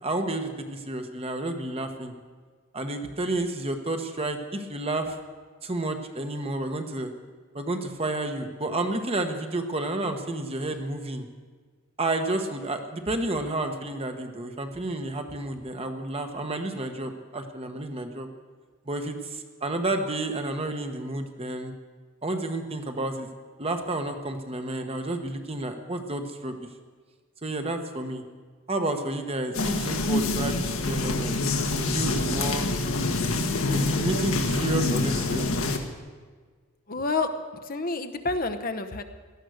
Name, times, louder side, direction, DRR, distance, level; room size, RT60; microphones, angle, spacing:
voice 1, 0.0-2.1 2.7-5.2 5.6-7.1 7.5-11.3 12.0-18.3 18.9-21.7 22.2-23.3 23.6-26.6 27.4-28.2 28.7-31.3 31.7-32.7 33.7-35.5, right 2 dB, 30° right, 5 dB, 1.2 m, -30 dB
sound 1, 29.5-35.8, left 2 dB, 80° left, 1.6 m, -26 dB
voice 2, 36.9-37.3 37.7-39.0, left 3 dB, 45° left, 8 dB, 0.9 m, -28 dB
17.5 x 13.0 x 6.5 m, 1.5 s
head